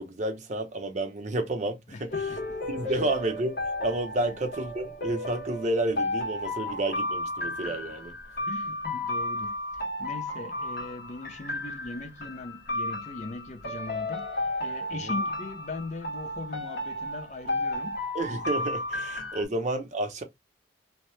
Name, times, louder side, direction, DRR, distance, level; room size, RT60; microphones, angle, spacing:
voice 1, 0.0-2.3 2.7-3.5 3.8-8.2 15.0-15.1 18.1-20.2, right 2 dB, 40° right, 0.6 m, -30 dB
voice 2, 1.9-2.4 2.8-3.1 4.2-4.3 8.5-18.1, left 2 dB, 40° left, 0.5 m, -40 dB
sound 1, 2.1-19.4, left 2 dB, 60° left, 1.4 m, -33 dB
2.8 x 2.0 x 3.1 m
head